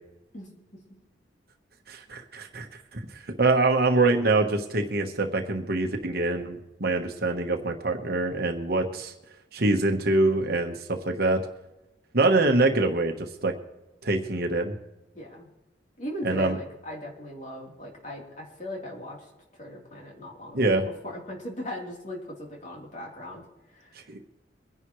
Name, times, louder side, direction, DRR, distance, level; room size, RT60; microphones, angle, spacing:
voice 1, 1.9-2.7 2.9-9.1 9.5-11.4 12.1-13.5 14.0-14.7 16.2-16.6 20.5-20.9 24.1-24.2, right 2 dB, 55° right, 3 dB, 1.2 m, -24 dB
voice 2, 15.1-15.5 16.0-24.1, left 1 dB, 40° left, -2 dB, 3.5 m, -39 dB
23.5 x 11.0 x 3.2 m, 1.0 s
head